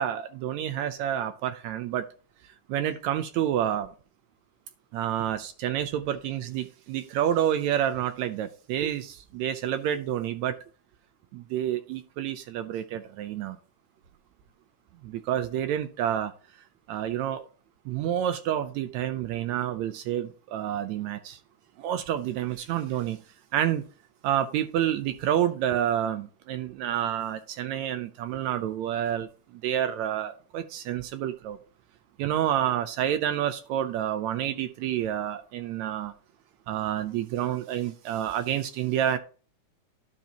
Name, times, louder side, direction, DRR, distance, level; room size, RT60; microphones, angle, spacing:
voice 1, 0.0-2.1 2.7-3.9 4.9-10.6 11.3-13.6 15.0-16.3 16.9-17.4 17.9-21.4 21.8-23.2 23.5-23.8 24.2-29.3 29.6-31.6 32.2-36.1 36.7-39.2, right 10 dB, 80° right, 9 dB, 1.8 m, -28 dB
12.0 x 5.5 x 2.9 m, 0.38 s
omnidirectional pair, 3.4 m